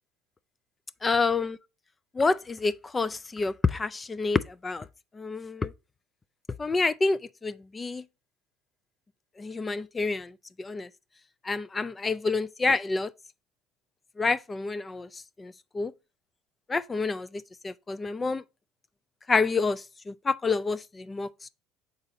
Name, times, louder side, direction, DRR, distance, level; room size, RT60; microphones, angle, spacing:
voice 1, 1.0-1.6 2.1-4.9 5.1-5.7 6.6-8.0 9.4-10.9 11.4-13.1 14.2-15.9 16.7-18.4 19.3-21.3, left 3 dB, 20° left, 0.3 m, -28 dB
6.8 x 4.1 x 3.7 m
supercardioid pair, 110°, 0 cm